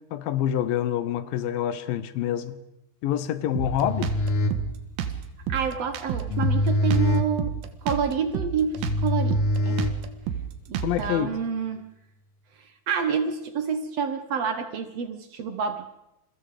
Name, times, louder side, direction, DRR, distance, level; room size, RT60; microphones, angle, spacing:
voice 1, 0.1-2.6 3.0-4.1 10.8-11.3, left 10 dB, 75° left, 2.8 m, -26 dB
sound 1, 3.5-10.5, left 1 dB, 55° left, 2.6 m, -26 dB
Drum kit, 3.6-11.2, right 9 dB, 90° right, 3.4 m, -31 dB
voice 2, 5.5-7.5 7.8-9.8 10.7-11.9 12.6-15.9, right 6 dB, 60° right, 1.9 m, -28 dB
28.5 x 22.5 x 5.1 m
omnidirectional pair, 4.2 m